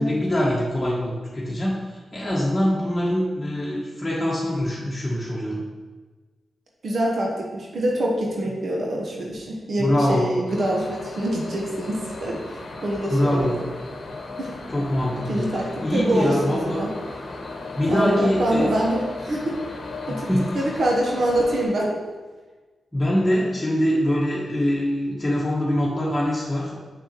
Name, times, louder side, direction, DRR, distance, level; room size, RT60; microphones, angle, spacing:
voice 1, 0.0-5.6 9.8-10.3 13.1-13.5 14.7-15.4 15.8-16.8 17.8-18.7 20.1-20.6 22.9-26.7, equal, 20° left, -6 dB, 1.4 m, -23 dB
voice 2, 6.8-12.4 12.8-13.6 14.4-14.5 15.1-16.9 17.8-19.6 20.1-20.3 20.5-21.9, right 1 dB, 70° right, -1 dB, 0.9 m, -25 dB
sound 1, 10.5-21.7, left 3 dB, 65° left, 0.9 m, -36 dB
6.1 x 5.5 x 2.9 m, 1.3 s
cardioid pair, 50°, 0 cm